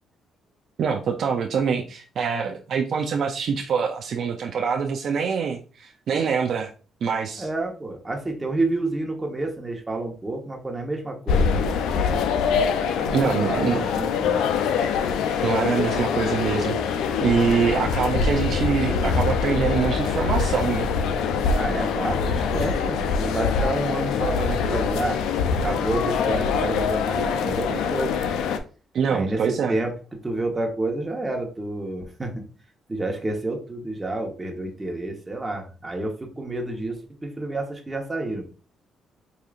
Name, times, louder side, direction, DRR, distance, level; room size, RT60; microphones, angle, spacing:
voice 1, 0.8-6.7 7.0-7.5 13.1-13.9 15.4-16.8 17.2-20.9 28.9-29.8, right 6 dB, 65° right, 4 dB, 0.4 m, -24 dB
voice 2, 7.4-11.7 12.9-14.4 21.5-25.2 25.6-28.1 29.1-29.9 30.2-32.4 32.9-38.4, right 2 dB, 20° right, 1 dB, 1.1 m, -29 dB
sound 1, 11.3-28.6, left 6 dB, 90° left, 0.4 m, -24 dB
4.8 x 2.7 x 2.4 m, 0.37 s
cardioid pair, 90°, 0 cm